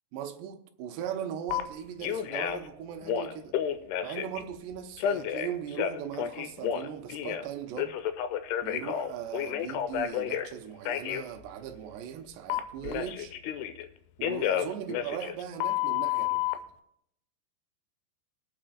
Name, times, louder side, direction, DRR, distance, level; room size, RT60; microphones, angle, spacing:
voice 1, 0.1-3.6 4.0-8.0 8.6-13.4 14.2-16.6, right 9 dB, 75° right, 2.7 m, -39 dB
Telephone, 1.5-1.6 2.0-2.7 3.0-4.4 5.0-7.5 7.8-10.5 10.9-11.2 12.5-13.9 14.2-16.6, left 10 dB, 90° left, 2.4 m, -30 dB
22.0 x 8.8 x 2.5 m
omnidirectional pair, 5.2 m